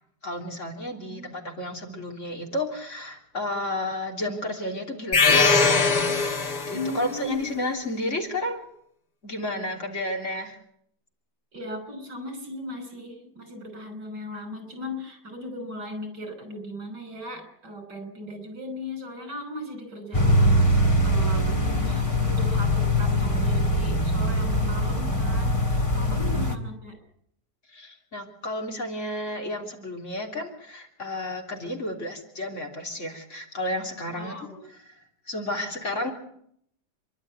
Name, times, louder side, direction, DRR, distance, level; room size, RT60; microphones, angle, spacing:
voice 1, 0.2-8.7 9.2-10.6 25.9-26.4 27.7-34.4 35.3-36.1, left 1 dB, 45° left, 1 dB, 3.6 m, -32 dB
voice 2, 0.9-1.3 6.7-7.5 11.5-27.0 34.1-34.6, left 1 dB, 85° right, 8 dB, 6.2 m, -37 dB
sound 1, 5.1-7.0, left 4 dB, 75° left, 3.3 m, -21 dB
sound 2, 20.1-26.6, equal, 20° left, 2.2 m, -22 dB
28.0 x 12.0 x 9.5 m, 0.70 s
omnidirectional pair, 1.8 m